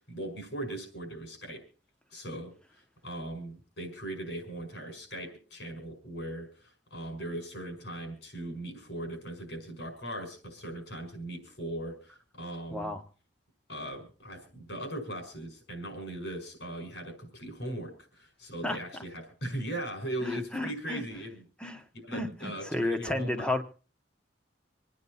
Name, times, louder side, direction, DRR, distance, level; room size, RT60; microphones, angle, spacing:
voice 1, 0.0-1.6 2.1-12.9 13.7-21.4 22.0-23.5, right 1 dB, 80° left, 4 dB, 5.3 m, -39 dB
voice 2, 12.7-13.0 18.6-18.8 20.2-21.0 21.6-21.8 22.1-23.6, left 2 dB, 5° left, 7 dB, 1.2 m, -32 dB
27.0 x 9.5 x 4.2 m, 0.38 s
head